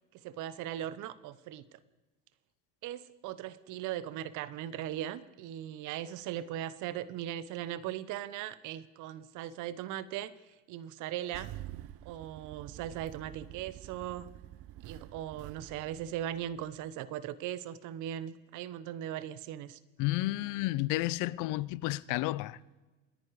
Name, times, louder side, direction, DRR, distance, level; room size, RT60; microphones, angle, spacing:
voice 1, 0.1-1.8 2.8-10.3 10.7-11.5 12.0-14.3 14.8-19.8, right 11 dB, 65° right, 1.0 m, -39 dB
Engine starting, 11.3-16.9, right 14 dB, 45° right, 0.4 m, -48 dB
voice 2, 20.0-22.8, left 18 dB, 70° left, 0.6 m, -32 dB
28.5 x 9.7 x 4.8 m
cardioid pair, 125°, 32 cm